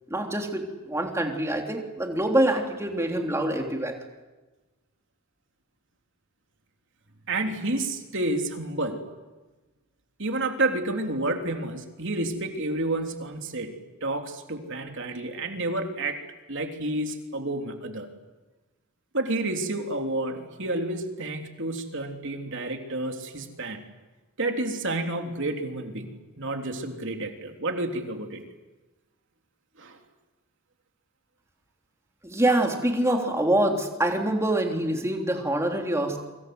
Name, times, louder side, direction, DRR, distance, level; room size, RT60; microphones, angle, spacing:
voice 1, 0.1-4.0 32.2-36.2, right 1 dB, 15° right, 2 dB, 3.3 m, -25 dB
voice 2, 7.3-9.0 10.2-13.7 14.0-16.2 16.5-18.1 19.1-23.8 24.4-26.1 26.4-28.4 29.8-30.0, right 2 dB, 55° right, 4 dB, 3.4 m, -30 dB
27.5 x 25.0 x 7.9 m, 1.2 s
head